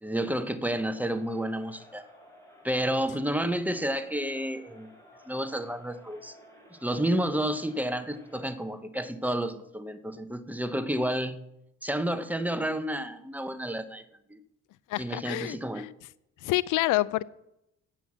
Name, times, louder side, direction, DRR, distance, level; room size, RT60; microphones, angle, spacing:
voice 1, 0.0-2.1 2.6-4.9 5.3-6.3 6.7-11.4 11.8-14.0 14.3-14.4 15.0-15.9, right 1 dB, 5° right, 10 dB, 0.9 m, -30 dB
Crowd, 0.7-8.8, left 1 dB, 10° left, 4.2 m, -55 dB
voice 2, 14.9-15.9 16.4-17.2, left 18 dB, 85° left, 20 dB, 0.5 m, -28 dB
9.1 x 7.9 x 7.2 m, 0.83 s
cardioid pair, 90°, 30 cm